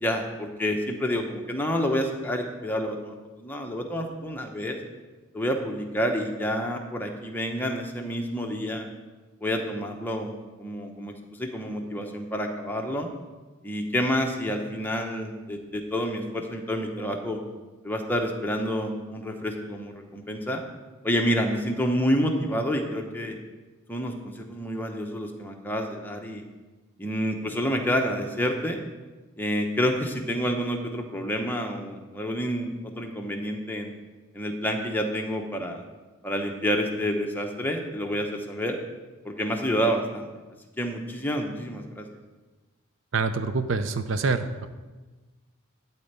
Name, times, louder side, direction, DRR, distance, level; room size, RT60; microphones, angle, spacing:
voice 1, 0.0-4.8 5.3-8.9 9.4-11.1 11.4-13.1 13.6-17.4 17.8-20.6 21.0-23.4 23.9-26.4 27.0-28.8 29.4-33.9 34.3-35.8 36.2-38.8 39.2-40.3 40.8-42.1, equal, 10° left, 2 dB, 0.9 m, -28 dB
voice 2, 43.1-44.7, right 4 dB, 60° right, 10 dB, 0.6 m, -26 dB
12.5 x 4.4 x 8.2 m, 1.2 s
head